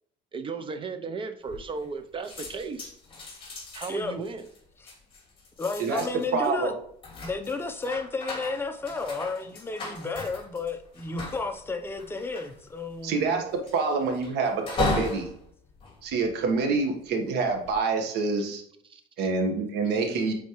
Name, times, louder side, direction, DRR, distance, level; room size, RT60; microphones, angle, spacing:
voice 1, 0.3-2.9 3.7-4.4 18.8-19.0, right 4 dB, 30° right, 9 dB, 0.7 m, -35 dB
sound 1, 1.5-2.0 2.2-16.8 17.4-17.8, left 3 dB, 30° left, 2.8 m, -37 dB
voice 2, 5.6-6.7 7.2-13.4, left 3 dB, 15° left, 5 dB, 0.7 m, -32 dB
voice 3, 6.3-6.7 13.0-15.3 16.0-18.6 19.2-20.3, right 4 dB, 75° right, 4 dB, 1.4 m, -26 dB
8.4 x 4.2 x 3.1 m, 0.67 s
cardioid pair, 120°, 17 cm